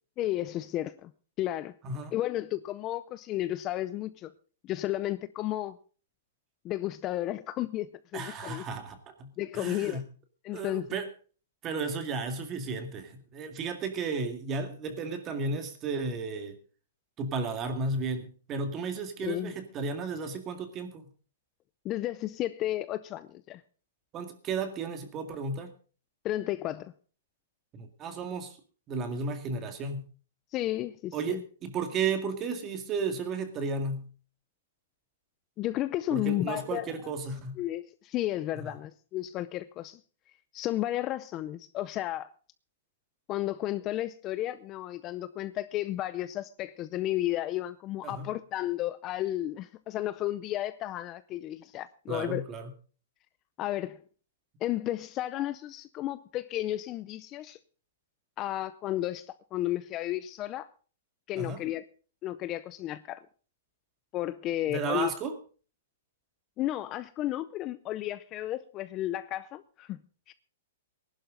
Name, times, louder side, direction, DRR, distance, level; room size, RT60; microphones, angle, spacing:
voice 1, 0.2-1.1 1.4-1.7 2.1-4.3 4.6-5.8 6.6-8.6 9.4-10.0 10.4-10.9 19.2-19.5 21.8-23.6 26.2-26.9 30.5-31.4 35.6-37.1 37.6-40.0 40.5-42.3 43.3-52.4 53.6-54.0 54.6-57.6 58.4-60.7 61.3-61.8 62.2-63.2 64.1-65.1 66.6-70.0 70.3-70.4, left 14 dB, 25° left, 0.5 m, -33 dB
voice 2, 8.1-10.1 10.5-11.1 11.6-16.6 17.2-21.0 24.1-25.7 27.7-28.6 28.9-30.1 31.1-34.1 36.1-37.6 38.6-38.7 48.0-48.3 52.1-52.7 61.4-61.6 64.7-65.3, right 4 dB, 20° right, 2.0 m, -34 dB
19.5 x 11.5 x 3.8 m
hypercardioid pair, 160°, 0 cm